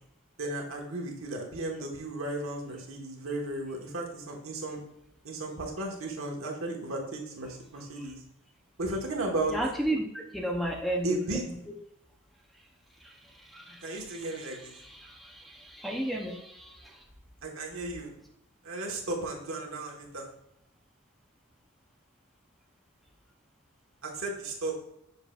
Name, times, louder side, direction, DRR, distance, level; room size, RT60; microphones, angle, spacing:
voice 1, 0.4-4.8 5.2-8.2 8.8-9.6 11.0-11.4 13.8-14.7 17.4-18.1 18.6-20.3 24.0-24.7, right 2 dB, 75° right, 0 dB, 1.3 m, -34 dB
voice 2, 9.5-11.2 13.5-13.8 14.8-16.7, right 1 dB, ahead, 0 dB, 0.5 m, -33 dB
7.1 x 5.6 x 2.3 m, 0.77 s
head